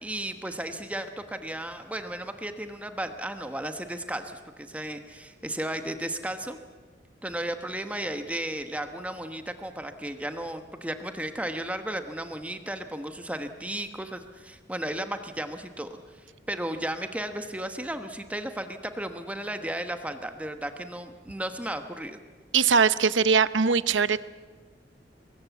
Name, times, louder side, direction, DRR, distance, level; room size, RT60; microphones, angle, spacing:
voice 1, 0.0-6.6 7.2-16.2 16.5-22.2, right 1 dB, 10° right, 7 dB, 1.1 m, -34 dB
voice 2, 22.5-24.2, right 5 dB, 90° right, 15 dB, 0.8 m, -21 dB
24.5 x 20.5 x 8.2 m, 1.4 s
head